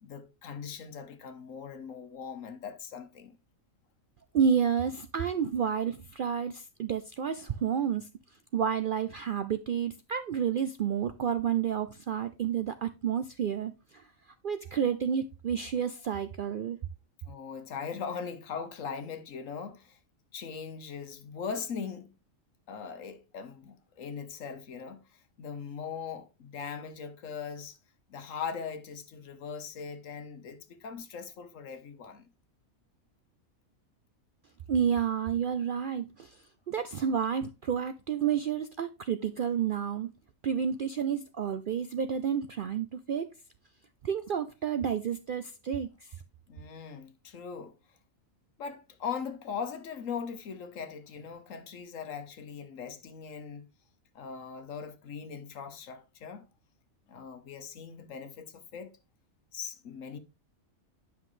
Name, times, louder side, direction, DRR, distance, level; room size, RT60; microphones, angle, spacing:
voice 1, 0.0-3.4 17.3-20.0 20.3-22.1 22.7-27.8 28.1-32.2 46.5-47.7 48.6-53.7 54.1-56.5 57.1-59.0 59.5-60.2, left 6 dB, 70° left, 1.3 m, -40 dB
voice 2, 4.3-8.1 8.5-14.0 14.4-16.8 34.7-40.1 40.4-43.3 44.0-46.1, right 8 dB, 65° right, 0.5 m, -30 dB
9.7 x 5.8 x 3.1 m
omnidirectional pair, 1.4 m